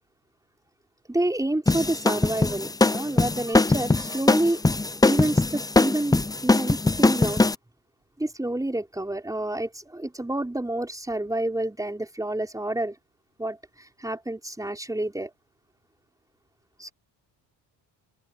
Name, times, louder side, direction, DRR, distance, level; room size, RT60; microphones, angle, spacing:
voice 1, 1.1-4.6 5.0-7.4 8.2-13.0 13.4-15.3 16.8-16.9, right 1 dB, 10° right, 5.2 m, -29 dB
sound 1, 1.7-7.5, left 3 dB, 10° left, 0.6 m, -21 dB
cardioid pair, 95°, 44 cm